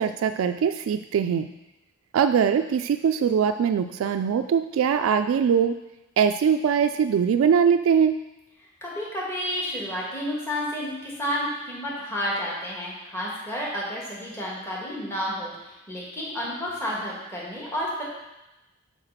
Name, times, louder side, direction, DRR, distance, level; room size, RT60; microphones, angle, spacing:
voice 1, 0.0-1.5 2.1-5.8 6.2-8.2, right 7 dB, 85° right, 9 dB, 0.3 m, -22 dB
voice 2, 8.8-18.0, equal, 15° left, -5 dB, 1.5 m, -31 dB
5.7 x 4.8 x 6.5 m, 0.98 s
head